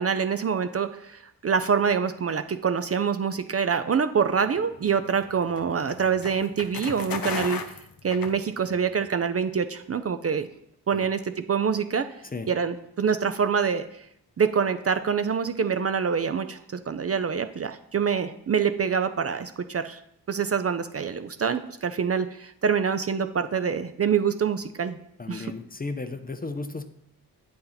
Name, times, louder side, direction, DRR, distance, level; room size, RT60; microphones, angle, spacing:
voice 1, 0.0-7.6 8.0-10.5 10.9-12.1 12.5-13.9 14.4-20.0 20.3-25.0 25.3-25.5, right 6 dB, 40° right, 10 dB, 0.4 m, -25 dB
sound 1, 4.5-8.9, left 6 dB, 60° left, 0.8 m, -36 dB
voice 2, 25.2-26.8, left 3 dB, 20° left, 9 dB, 0.5 m, -34 dB
8.4 x 4.3 x 3.9 m, 0.74 s
cardioid pair, 65°, 40 cm